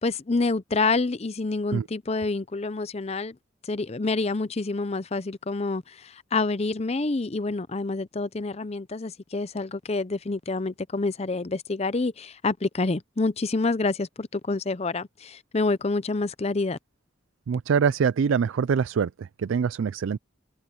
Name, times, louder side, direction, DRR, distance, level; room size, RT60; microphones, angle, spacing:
voice 1, 0.0-3.4 3.6-16.8, left 3 dB, 30° left, 0.6 m, -27 dB
voice 2, 17.5-20.2, right 6 dB, 80° right, 0.4 m, -24 dB
head